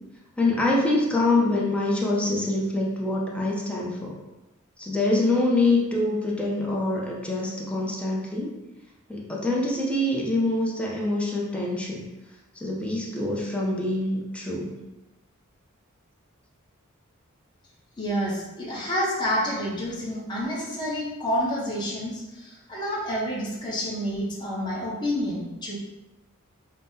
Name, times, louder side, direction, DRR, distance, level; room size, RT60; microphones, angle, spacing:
voice 1, 0.4-4.2 4.8-8.5 9.1-12.0 12.5-14.7, left 2 dB, 5° left, -4 dB, 0.5 m, -25 dB
voice 2, 18.0-25.7, equal, 20° left, -5 dB, 0.9 m, -29 dB
5.3 x 2.1 x 2.7 m, 1.0 s
head